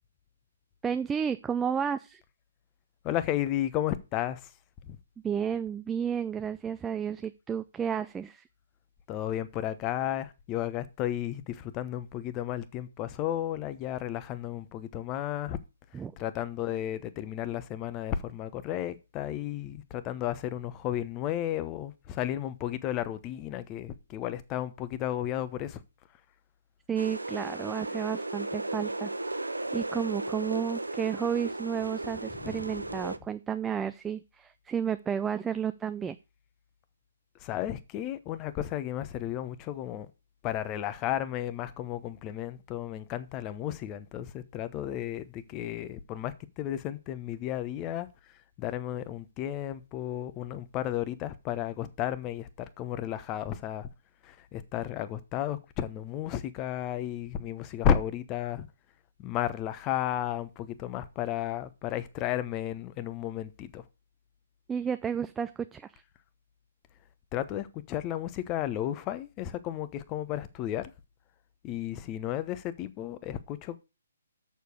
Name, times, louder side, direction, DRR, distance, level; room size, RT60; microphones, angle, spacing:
voice 1, 0.8-2.2 5.2-8.4 15.9-16.1 26.9-29.1 29.7-36.2 64.7-66.0, right 7 dB, 10° right, 0.4 m, -32 dB
voice 2, 3.0-4.4 4.9-5.0 9.1-15.6 16.2-25.8 32.4-32.6 37.4-40.1 40.4-48.1 48.6-53.9 54.2-58.7 59.2-63.8 67.3-70.9 71.6-73.8, left 11 dB, 25° left, 1.0 m, -33 dB
sound 1, 27.0-33.2, right 2 dB, 90° right, 0.8 m, -35 dB
6.9 x 6.7 x 6.3 m
figure-of-eight pair, 135°, 0 cm